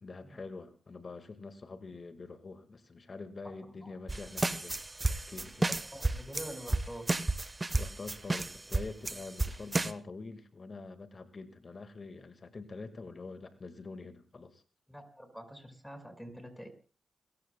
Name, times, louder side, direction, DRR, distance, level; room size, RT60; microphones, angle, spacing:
voice 1, 0.0-4.8 5.1-5.7 7.7-14.6, left 3 dB, 50° left, 9 dB, 1.7 m, -45 dB
voice 2, 3.4-3.9 5.9-7.2 14.9-16.7, equal, 5° left, 6 dB, 5.2 m, -46 dB
sound 1, 4.1-9.9, right 2 dB, 30° right, 1.0 m, -32 dB
30.0 x 14.5 x 2.2 m, 0.36 s
supercardioid pair, 40°, 0 cm